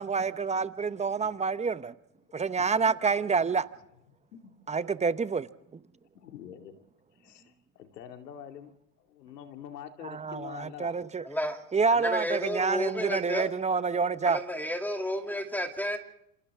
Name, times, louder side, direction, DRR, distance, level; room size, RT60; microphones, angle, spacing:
voice 1, 0.0-1.9 2.3-3.7 4.7-5.5 10.0-11.2 11.7-14.4, right 5 dB, 15° right, 0.9 m, -28 dB
voice 2, 1.1-1.4 2.2-2.3 2.7-2.8 4.3-4.5 6.1-6.8 7.2-8.7 9.0-11.0 13.7-13.8, left 9 dB, 85° left, 2.6 m, -46 dB
voice 3, 11.2-11.6 11.9-13.5 14.2-16.0, equal, 5° left, 2.7 m, -31 dB
28.0 x 26.5 x 3.7 m
hypercardioid pair, 100°, 47 cm